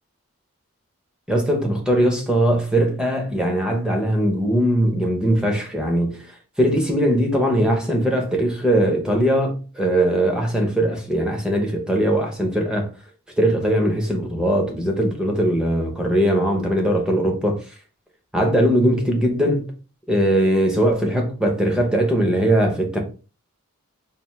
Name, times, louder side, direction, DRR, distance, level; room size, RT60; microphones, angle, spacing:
voice 1, 1.3-6.2 6.6-12.9 13.4-17.6 18.3-19.7 20.1-23.0, right 1 dB, 5° right, 0.8 m, -20 dB
4.2 x 2.6 x 3.3 m
head